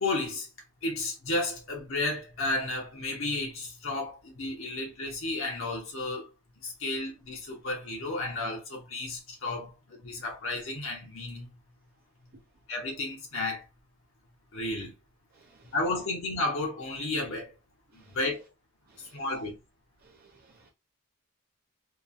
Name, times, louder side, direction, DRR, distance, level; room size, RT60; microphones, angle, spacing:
voice 1, 0.0-0.5 0.8-6.3 6.6-11.5 12.7-13.6 14.5-14.9 15.7-17.5 17.9-18.4 19.1-19.6, left 2 dB, 60° left, 0.9 m, -32 dB
voice 2, 15.3-15.7 17.9-18.2 18.9-19.2 20.0-20.7, right 4 dB, 45° right, 0.5 m, -60 dB
2.9 x 2.3 x 2.5 m
head